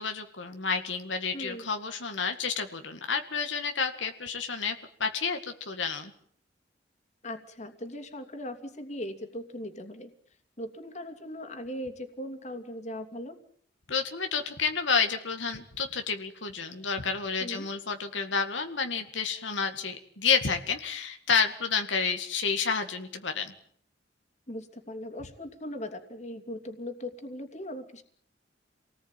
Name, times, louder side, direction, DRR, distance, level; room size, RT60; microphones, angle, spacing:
voice 1, 0.0-6.1 13.9-23.5, left 5 dB, 85° left, 6 dB, 2.0 m, -30 dB
voice 2, 1.3-1.7 7.2-10.1 10.6-13.4 17.4-17.7 24.5-28.0, left 1 dB, 40° left, 6 dB, 2.9 m, -39 dB
28.0 x 19.0 x 9.1 m, 0.65 s
head